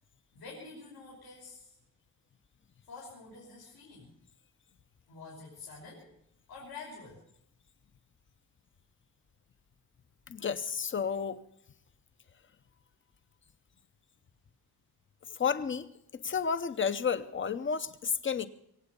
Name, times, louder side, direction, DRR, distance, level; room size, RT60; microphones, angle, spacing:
voice 1, 0.3-1.8 2.9-4.1 5.1-6.1 6.5-7.2, left 4 dB, 80° left, -5 dB, 5.6 m, -48 dB
voice 2, 10.3-11.4 15.3-18.5, left 6 dB, 35° left, 13 dB, 0.8 m, -32 dB
24.0 x 9.0 x 6.8 m, 0.76 s
wide cardioid pair, 175°, 37 cm